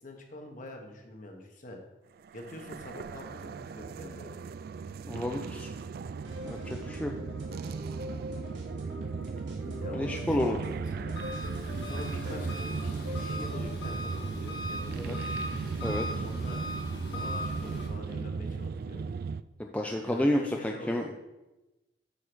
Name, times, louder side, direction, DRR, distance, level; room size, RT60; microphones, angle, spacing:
voice 1, 0.0-1.8 2.3-4.3 9.8-11.2 11.8-15.2 16.2-16.6 17.1-19.0 20.0-21.1, left 1 dB, 45° left, 3 dB, 1.4 m, -45 dB
sound 1, 2.2-19.4, right 5 dB, 55° right, 0.3 m, -37 dB
voice 2, 5.1-5.7 6.4-7.1 9.7-10.6 14.9-15.2 15.8-16.1 19.6-21.2, left 1 dB, 10° left, 2 dB, 0.5 m, -31 dB
sound 2, 6.2-13.6, left 1 dB, 90° right, 2.2 m, -43 dB
Engine, 11.1-17.9, left 1 dB, 65° left, 2.2 m, -39 dB
8.5 x 4.9 x 6.2 m, 1.0 s
head